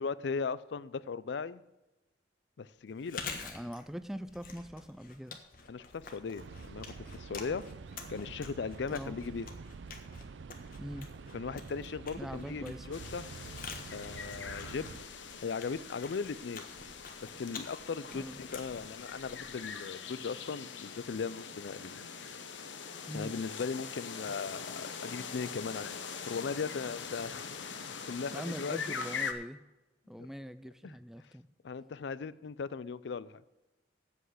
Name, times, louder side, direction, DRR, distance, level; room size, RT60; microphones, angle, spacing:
voice 1, 0.0-1.6 2.6-3.2 5.7-7.6 8.1-9.5 11.3-13.2 13.9-15.0 15.4-16.6 17.2-22.0 23.1-26.0 26.3-27.8 28.1-28.8 30.2-30.3 30.8-30.9 31.6-33.4, left 5 dB, 70° left, 0.4 m, -38 dB
Chewing mastication, 2.9-19.8, left 5 dB, 50° left, 1.4 m, -48 dB
voice 2, 3.3-5.4 8.9-9.2 10.8-11.1 12.2-12.9 18.1-18.4 23.1-23.3 28.3-29.6 30.1-31.5, equal, ahead, 0.3 m, -42 dB
sound 1, 6.4-15.0, right 4 dB, 80° right, 0.5 m, -47 dB
sound 2, 12.9-29.3, left 6 dB, 85° left, 1.0 m, -43 dB
8.1 x 7.9 x 8.0 m
head